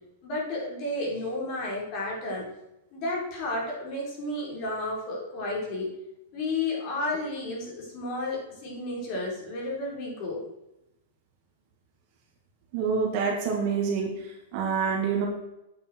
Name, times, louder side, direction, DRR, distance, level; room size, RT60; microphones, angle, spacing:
voice 1, 0.2-2.5 2.9-6.0 6.3-10.4, left 2 dB, 35° left, -3 dB, 4.6 m, -32 dB
voice 2, 12.7-14.2 14.5-15.2, right 5 dB, 40° right, 1 dB, 2.2 m, -26 dB
9.0 x 8.9 x 4.6 m, 0.89 s
supercardioid pair, 165°, 0 cm